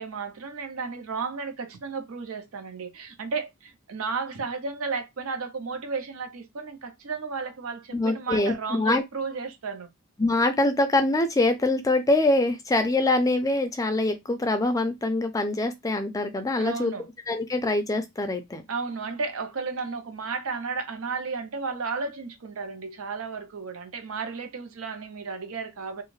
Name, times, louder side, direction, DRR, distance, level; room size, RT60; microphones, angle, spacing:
voice 1, 0.0-9.9 16.6-17.1 18.7-26.0, right 4 dB, 75° right, 0.6 m, -33 dB
voice 2, 7.9-9.0 10.2-16.9 17.3-18.6, left 2 dB, 15° left, 0.3 m, -24 dB
2.5 x 2.3 x 3.1 m
head